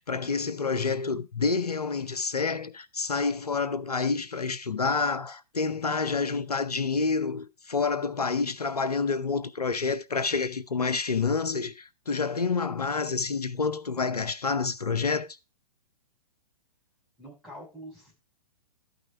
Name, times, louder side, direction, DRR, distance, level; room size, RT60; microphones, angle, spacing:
voice 1, 0.0-15.4, left 4 dB, 80° left, 0.8 m, -28 dB
voice 2, 17.2-18.1, equal, ahead, 6.4 m, -45 dB
13.0 x 5.6 x 4.4 m
figure-of-eight pair, 115°, 20 cm